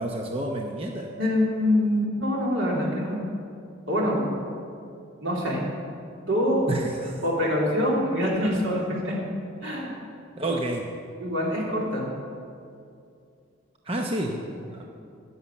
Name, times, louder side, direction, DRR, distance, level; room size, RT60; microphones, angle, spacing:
voice 1, 0.0-1.1 6.7-7.2 10.4-10.8 13.9-14.4 14.7-14.8, right 1 dB, 30° right, 1 dB, 0.7 m, -29 dB
voice 2, 1.2-3.2 3.9-4.3 5.2-5.6 6.3-6.7 7.2-9.2 9.6-9.9 11.2-12.1, left 1 dB, 75° right, -4 dB, 3.3 m, -25 dB
11.0 x 9.6 x 7.2 m, 2.4 s
head